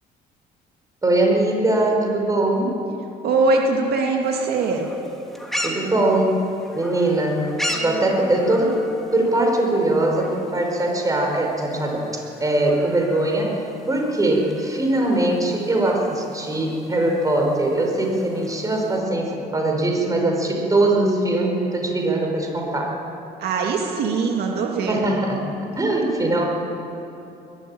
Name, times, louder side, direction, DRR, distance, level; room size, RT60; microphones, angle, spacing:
voice 1, 1.0-2.7 5.6-6.4 6.7-7.4 7.8-8.8 9.1-22.9 24.9-26.4, right 1 dB, 20° right, 1 dB, 5.0 m, -21 dB
voice 2, 3.2-4.9 23.4-25.0, right 3 dB, 70° right, 1 dB, 2.4 m, -21 dB
sound 1, 4.2-19.0, equal, ahead, 2.7 m, -37 dB
Human voice, 7.7-9.4, right 2 dB, 40° right, 6.2 m, -35 dB
21.5 x 13.0 x 9.8 m, 3.0 s
cardioid pair, 110°, 17 cm